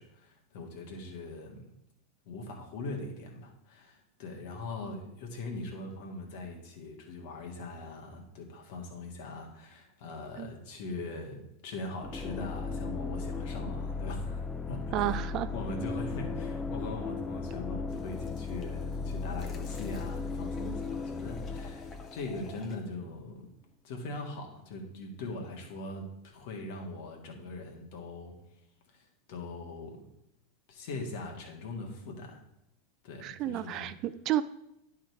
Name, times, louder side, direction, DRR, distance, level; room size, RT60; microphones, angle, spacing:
voice 1, 0.0-1.7 2.3-14.4 14.7-15.2 15.5-23.5 23.8-28.3 28.9-30.1 30.7-32.4 33.0-34.0, left 2 dB, 60° left, 1 dB, 1.8 m, -41 dB
sound 1, 12.0-22.8, left 4 dB, 15° left, 0.5 m, -36 dB
voice 2, 14.9-15.5 33.2-34.4, right 13 dB, 45° right, 13 dB, 0.4 m, -31 dB
sound 2, 17.9-22.9, left 4 dB, 35° left, 1.0 m, -54 dB
10.5 x 3.9 x 4.7 m, 0.83 s
figure-of-eight pair, 90°, 0 cm